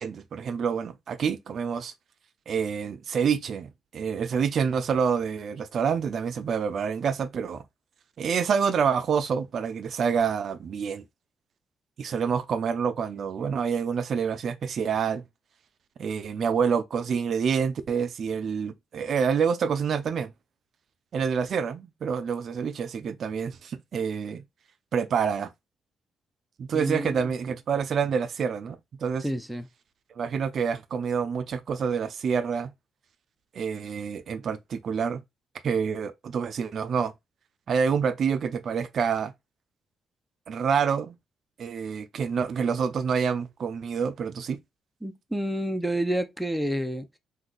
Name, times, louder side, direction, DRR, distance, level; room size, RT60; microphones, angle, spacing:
voice 1, 0.0-1.9 2.5-7.6 8.2-11.0 12.0-15.2 16.0-20.3 21.1-24.4 24.9-25.5 26.6-29.3 30.2-32.7 33.5-35.2 35.6-37.1 37.7-39.3 40.5-41.2 41.6-44.6, right 6 dB, 60° right, 0.5 m, -27 dB
voice 2, 26.7-27.2 29.2-29.7 45.0-47.2, right 1 dB, 5° right, 0.5 m, -29 dB
2.7 x 2.3 x 3.8 m
cardioid pair, 90°, 0 cm